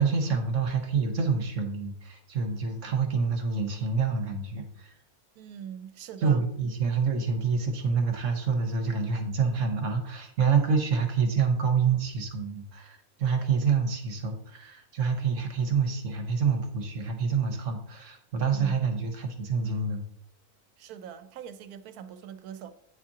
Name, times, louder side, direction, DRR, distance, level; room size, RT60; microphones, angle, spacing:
voice 1, 0.0-4.9 6.2-20.0, right 5 dB, 60° right, 1.3 m, -27 dB
voice 2, 5.4-6.4 18.5-18.8 20.8-22.7, right 8 dB, 80° right, 1.1 m, -42 dB
8.8 x 7.2 x 2.8 m
omnidirectional pair, 1.6 m